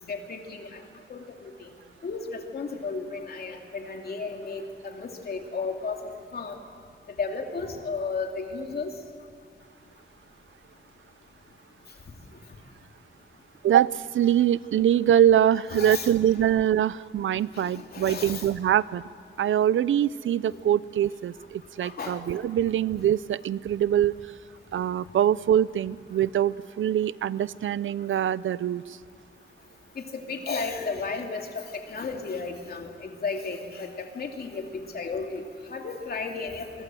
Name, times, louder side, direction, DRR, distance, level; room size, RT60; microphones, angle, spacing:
voice 1, 0.1-0.8 1.1-1.3 2.0-6.0 6.3-6.6 7.2-8.9 15.7-16.1 17.6-18.5 21.8-22.2 30.1-34.6 34.9-35.4 35.7-36.7, left 4 dB, 50° left, 3 dB, 2.7 m, -33 dB
voice 2, 13.6-19.0 19.4-24.1 24.7-29.0, right 10 dB, 85° right, 18 dB, 0.6 m, -23 dB
27.5 x 24.5 x 7.7 m, 2.2 s
wide cardioid pair, 165°, 20 cm